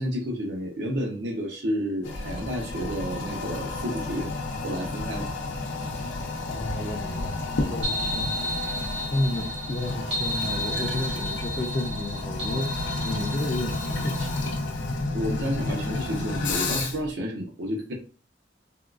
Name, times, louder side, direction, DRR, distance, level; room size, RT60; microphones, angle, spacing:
voice 1, 0.0-4.3 4.6-5.3 15.1-17.9, equal, 70° right, 0.6 m, -31 dB
Toilet flush, 2.0-17.1, left 2 dB, 90° left, 0.5 m, -31 dB
voice 2, 6.5-8.6 9.1-14.7, left 1 dB, 30° left, 0.4 m, -32 dB
sound 1, 7.8-14.5, equal, 90° right, 1.4 m, -33 dB
3.5 x 2.3 x 2.3 m
head